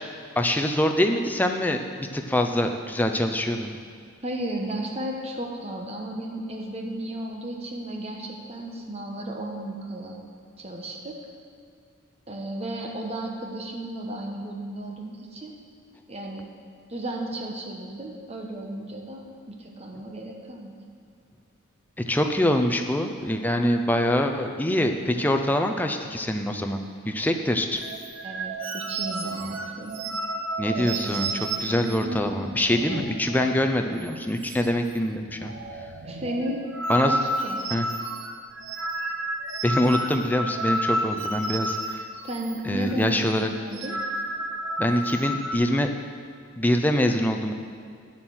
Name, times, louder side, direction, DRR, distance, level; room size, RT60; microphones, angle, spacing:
voice 1, 0.4-3.7 22.1-26.8 27.1-27.8 30.6-35.5 36.9-37.2 37.7-37.9 39.6-42.1 42.6-43.5 44.8-45.9 46.6-47.5, left 1 dB, 10° left, 4 dB, 0.5 m, -24 dB
voice 2, 4.2-10.2 10.6-11.2 12.3-15.6 16.1-16.5 16.9-20.7 28.2-30.0 30.7-32.5 36.0-36.7 37.0-37.7 42.2-44.0, right 1 dB, 30° right, 1 dB, 1.1 m, -34 dB
sound 1, 27.8-33.7 34.0-34.1 34.4-35.0 35.3-42.6 42.9-43.1 43.6-45.5, right 1 dB, 65° right, 0.7 m, -31 dB
9.0 x 7.4 x 6.2 m, 2.3 s
head